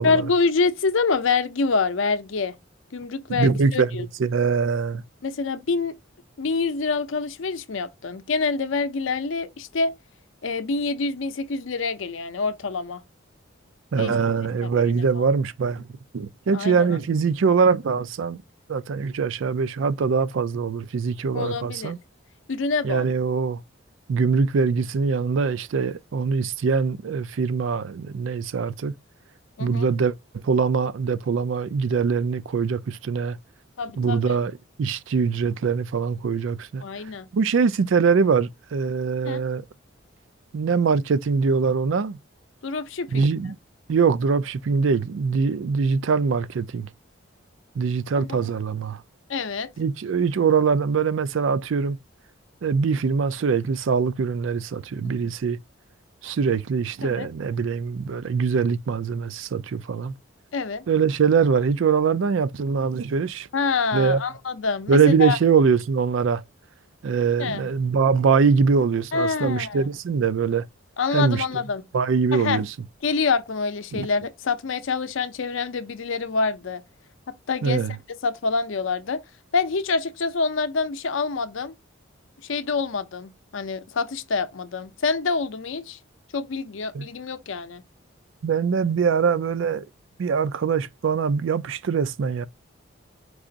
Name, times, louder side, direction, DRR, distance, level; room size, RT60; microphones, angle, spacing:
voice 1, 0.0-2.5 2.9-4.1 5.2-5.9 6.4-9.9 10.4-13.0 14.0-14.1 14.6-15.2 16.5-16.9 21.3-21.9 22.5-23.1 29.6-29.9 33.8-34.4 36.8-37.3 39.2-39.4 42.6-43.3 48.2-48.3 49.3-49.7 55.0-55.2 57.0-57.3 60.5-60.9 63.5-65.4 67.4-67.7 69.1-69.9 71.0-71.8 72.3-72.6 73.0-76.8 77.5-77.8 78.2-79.2 79.5-81.7 82.5-86.0 86.3-87.8, left 4 dB, 70° left, 0.6 m, -26 dB
voice 2, 3.3-5.0 13.9-15.9 16.1-18.4 18.7-22.0 22.8-23.6 24.1-28.9 29.6-30.1 30.4-33.4 34.0-36.8 37.3-39.6 40.5-42.2 43.1-43.6 43.9-46.9 47.8-49.0 49.8-52.0 52.6-55.6 56.2-60.1 60.9-63.5 63.9-64.2 64.9-66.4 67.0-70.7 71.1-71.4 71.9-72.7 73.9-74.1 77.6-78.0 86.9-87.1 88.4-89.9 90.2-92.5, right 5 dB, 70° right, 0.4 m, -23 dB
4.8 x 2.5 x 3.8 m
head